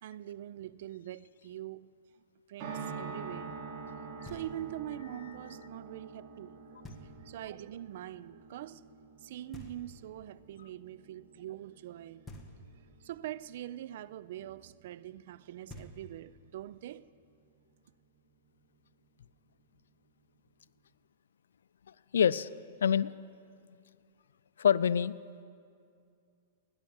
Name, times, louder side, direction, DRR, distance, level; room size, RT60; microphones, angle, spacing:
voice 1, 0.0-1.9 2.5-3.6 4.2-6.6 7.2-8.8 9.2-12.3 13.0-17.0, right 12 dB, 60° right, 0.4 m, -43 dB
sound 1, 2.6-14.8 15.1-15.2 15.4-15.5, right 5 dB, 45° right, 2.9 m, -47 dB
Knock, 4.2-4.9 6.8-7.5 9.5-10.3 12.2-13.0 15.3-15.4 15.7-16.5, equal, 10° left, 1.5 m, -50 dB
voice 2, 22.1-22.5 22.8-23.1 24.6-25.1, left 8 dB, 90° left, 0.4 m, -25 dB
17.0 x 10.0 x 7.0 m
hypercardioid pair, 140°, 0 cm